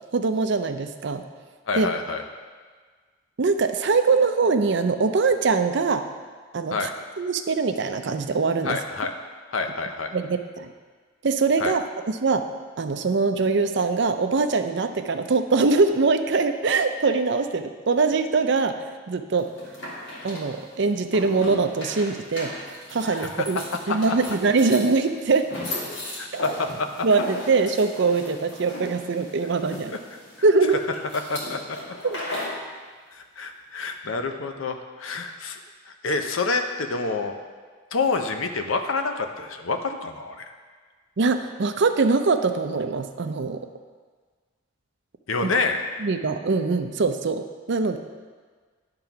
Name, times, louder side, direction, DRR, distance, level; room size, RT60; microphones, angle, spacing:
voice 1, 0.1-1.2 1.8-1.9 3.4-6.1 6.5-6.9 7.2-8.8 10.1-10.7 11.2-12.4 12.8-18.8 19.1-19.5 20.2-22.5 22.9-23.6 23.9-25.5 26.3-26.4 27.0-29.9 30.4-30.8 32.0-32.2 41.2-43.7 45.4-45.5 46.0-48.0, right 4 dB, 60° right, 8 dB, 0.5 m, -22 dB
voice 2, 1.7-2.2 6.7-6.9 8.6-9.1 9.5-10.1 11.6-11.7 23.1-23.5 23.9-24.0 26.2-27.1 30.1-30.2 31.3-31.8 33.1-35.6 35.9-37.3 37.9-40.5 45.3-45.8, left 3 dB, 85° left, 6 dB, 0.7 m, -28 dB
sound 1, 19.4-32.6, left 1 dB, 65° left, 2.2 m, -37 dB
11.0 x 3.8 x 5.8 m, 1.5 s
head